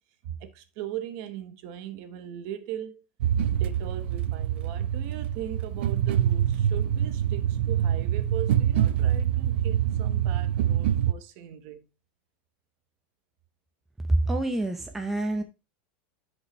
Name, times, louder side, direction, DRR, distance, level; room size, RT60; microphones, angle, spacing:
voice 1, 0.2-3.0 3.5-11.9, right 11 dB, 45° right, 1.1 m, -39 dB
sound 1, 3.2-11.1, right 10 dB, 85° right, 0.5 m, -25 dB
voice 2, 14.1-15.4, right 2 dB, 5° right, 0.6 m, -26 dB
10.0 x 5.4 x 3.1 m
supercardioid pair, 175°, 6 cm